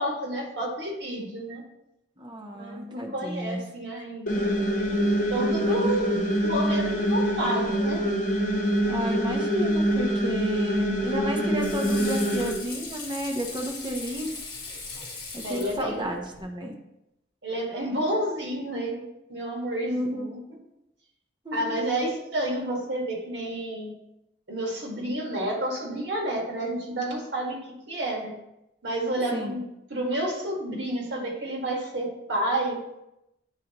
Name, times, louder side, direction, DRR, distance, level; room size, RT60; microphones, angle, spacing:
voice 1, 0.0-1.6 2.5-4.5 5.3-6.2 6.4-8.0 15.4-16.0 17.4-19.0 19.3-20.4 21.5-23.9 24.5-27.6 27.9-28.3 28.8-29.6 29.9-32.8, right 1 dB, 80° right, -1 dB, 1.7 m, -30 dB
voice 2, 2.2-3.6 4.0-4.1 5.7-6.3 8.8-14.3 15.3-16.8 19.9-20.3 21.4-21.8 29.3-29.6, equal, 25° right, 2 dB, 0.8 m, -32 dB
sound 1, 4.3-12.5, equal, 45° left, 1.0 m, -25 dB
Water / Sink (filling or washing), 10.9-16.4, left 3 dB, 25° left, 1.3 m, -39 dB
8.9 x 3.9 x 2.9 m, 0.88 s
head